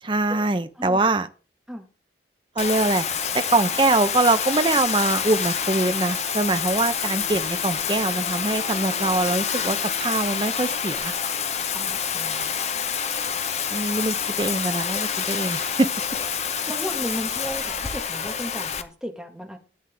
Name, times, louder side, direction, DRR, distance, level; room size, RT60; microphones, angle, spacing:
voice 1, 0.0-1.3 2.6-3.0 3.3-11.1 13.7-15.9, right 2 dB, 25° right, 9 dB, 0.6 m, -23 dB
sound 1, 2.6-10.2, left 2 dB, 60° left, 4.8 m, -45 dB
Bathtub (filling or washing), 2.6-18.8, left 7 dB, 35° left, 0.8 m, -27 dB
voice 2, 11.7-12.6 16.7-19.6, equal, 5° right, 3 dB, 1.5 m, -35 dB
14.0 x 9.2 x 3.4 m, 0.37 s
head